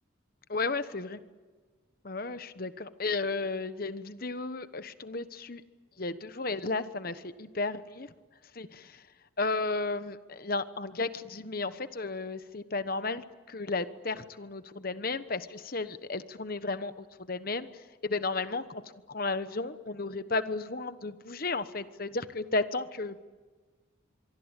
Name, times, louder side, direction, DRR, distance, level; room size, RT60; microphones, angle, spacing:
voice 1, 0.5-1.2 2.0-5.6 6.0-8.1 8.5-9.0 9.4-18.8 19.1-23.2, left 3 dB, 45° left, 12 dB, 1.1 m, -34 dB
25.5 x 23.5 x 9.1 m, 1.3 s
head